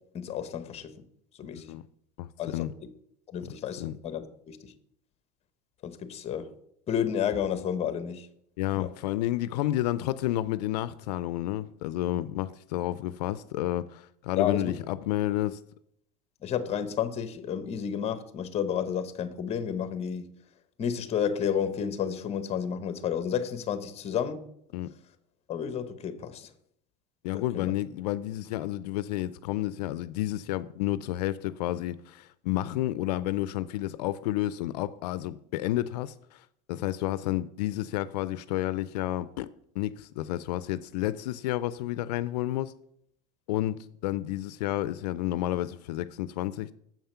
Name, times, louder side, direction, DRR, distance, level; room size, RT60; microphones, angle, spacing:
voice 1, 0.1-0.9 1.4-1.7 2.4-2.6 3.3-4.7 5.8-6.5 6.9-8.3 8.8-8.9 14.4-14.7 16.4-20.3 20.8-24.5 25.5-26.5 27.3-27.7, left 8 dB, 30° left, 0.9 m, -31 dB
voice 2, 1.5-1.8 2.2-2.7 3.4-3.5 3.8-4.0 8.6-15.6 24.7-24.9 27.2-36.4 36.7-39.5 39.8-42.7 43.5-46.7, left 14 dB, 90° left, 0.4 m, -31 dB
7.3 x 5.6 x 5.6 m
supercardioid pair, 125°, 20 cm